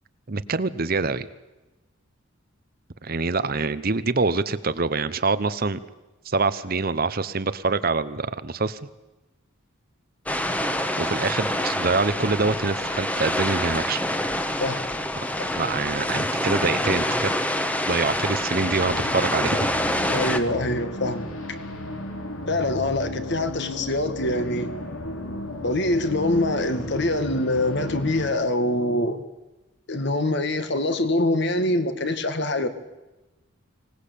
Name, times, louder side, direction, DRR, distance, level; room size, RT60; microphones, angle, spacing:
voice 1, 0.3-1.3 3.0-5.8 6.2-8.8 11.0-14.0 15.5-17.4 17.9-19.7, right 3 dB, 45° right, 14 dB, 0.9 m, -25 dB
sound 1, 10.3-20.4, left 1 dB, 5° left, 1.3 m, -26 dB
sound 2, 18.5-28.3, left 1 dB, 85° left, 3.7 m, -34 dB
voice 2, 20.1-21.3 22.5-24.7 25.6-29.2 29.9-32.7, left 1 dB, 55° left, 9 dB, 1.9 m, -24 dB
25.0 x 18.5 x 8.5 m, 1.1 s
head